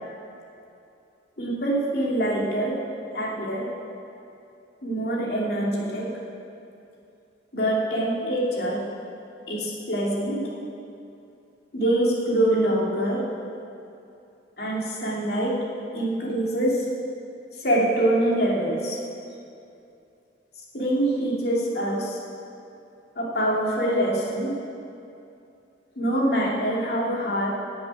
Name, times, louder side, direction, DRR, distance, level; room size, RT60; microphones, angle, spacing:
voice 1, 1.4-2.8 3.1-3.7 4.8-6.1 7.5-8.8 9.5-10.4 11.7-13.2 14.6-15.6 15.9-16.8 17.6-19.0 20.7-22.2 23.2-24.6 26.0-27.5, right 1 dB, 60° left, -4 dB, 2.8 m, -24 dB
12.0 x 7.7 x 9.0 m, 2.7 s
head